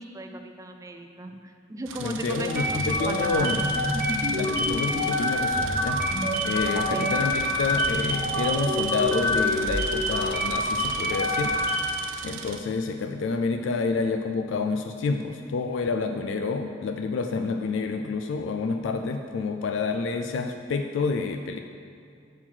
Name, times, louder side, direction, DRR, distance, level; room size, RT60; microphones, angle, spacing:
voice 1, 0.0-1.4 1.7-3.6 3.9-4.2 6.7-7.1, right 1 dB, 15° right, 5 dB, 0.4 m, -36 dB
sound 1, 1.9-12.6, right 6 dB, 85° right, 0.5 m, -40 dB
voice 2, 2.0-3.7 4.3-11.5 12.2-21.6, left 4 dB, 70° left, 6 dB, 0.3 m, -28 dB
sound 2, 2.5-12.0, left 1 dB, 50° right, 1.1 m, -26 dB
6.1 x 5.7 x 4.4 m, 2.4 s
head